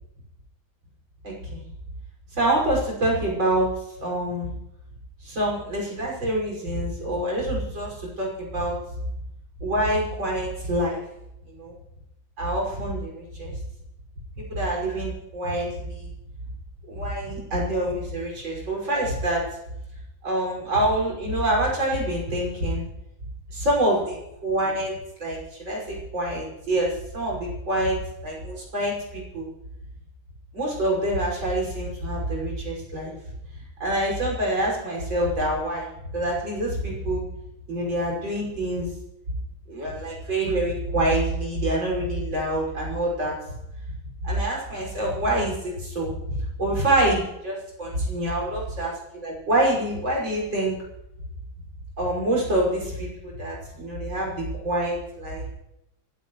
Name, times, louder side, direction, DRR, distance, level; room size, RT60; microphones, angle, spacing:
voice 1, 1.2-1.6 2.3-3.7 4.0-4.5 5.2-8.8 9.6-11.0 11.5-11.7 12.4-13.6 14.4-16.1 16.9-19.4 20.2-22.9 23.5-24.9 25.2-29.5 30.5-33.1 33.8-35.9 36.1-37.2 37.7-38.9 39.7-43.3 44.2-50.7 52.0-55.5, right 1 dB, 65° right, -3 dB, 6.7 m, -26 dB
28.5 x 14.5 x 3.2 m, 0.85 s
omnidirectional pair, 2.2 m